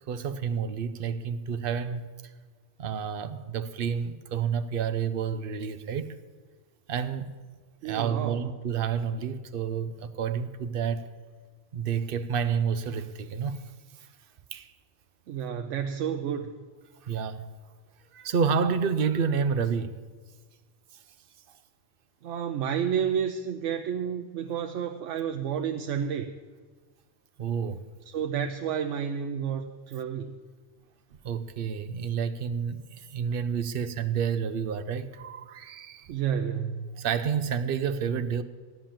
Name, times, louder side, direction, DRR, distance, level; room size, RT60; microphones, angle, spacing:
voice 1, 0.1-2.0 2.8-6.1 6.9-7.3 7.8-11.1 11.7-13.6 14.5-14.7 17.0-17.5 18.1-19.9 27.4-27.8 31.2-36.1 37.0-38.4, right 6 dB, 55° right, 0.9 m, -29 dB
voice 2, 7.8-8.5 15.3-16.5 22.2-26.3 28.1-30.3 36.1-37.0, right 8 dB, 80° right, 1.0 m, -30 dB
14.0 x 10.0 x 7.5 m
omnidirectional pair, 1.2 m